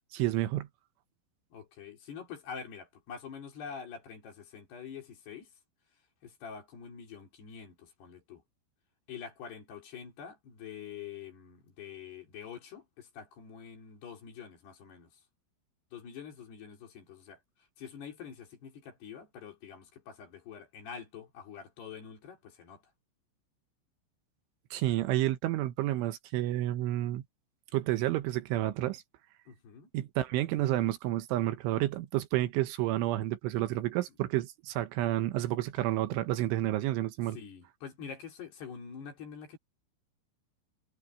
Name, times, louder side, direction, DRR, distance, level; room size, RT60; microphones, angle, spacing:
voice 1, 0.1-0.7 24.7-27.2 27.7-29.0 29.9-37.4, right 15 dB, 75° right, 3.3 m, -30 dB
voice 2, 1.5-5.5 6.2-8.4 9.1-15.2 15.9-22.8 29.5-29.9 37.3-39.6, left 7 dB, 55° left, 5.4 m, -46 dB
omnidirectional pair, 5.8 m